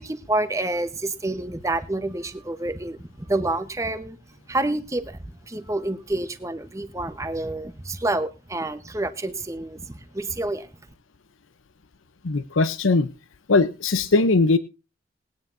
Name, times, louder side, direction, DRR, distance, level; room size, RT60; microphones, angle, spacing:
voice 1, 0.0-4.2 4.5-10.7, right 2 dB, 15° right, 9 dB, 0.9 m, -28 dB
voice 2, 12.2-13.1 13.5-14.6, left 3 dB, 80° left, 12 dB, 0.7 m, -20 dB
21.0 x 9.5 x 2.6 m, 0.27 s
head